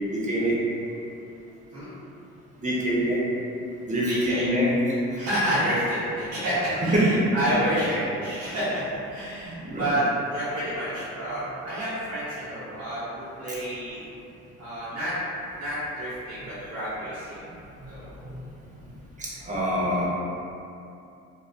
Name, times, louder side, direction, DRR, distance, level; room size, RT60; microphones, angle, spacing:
voice 1, 0.1-0.6 2.6-3.2 3.9-4.7 6.9-7.4 9.5-9.9 19.2-20.1, equal, 25° right, -6 dB, 0.6 m, -24 dB
voice 2, 4.0-4.5 5.2-10.0 10.3-14.0 14.6-15.1 15.6-17.5 17.9-18.3, right 1 dB, 55° right, -12 dB, 0.8 m, -29 dB
2.4 x 2.3 x 2.2 m, 2.7 s
cardioid pair, 90°, 30 cm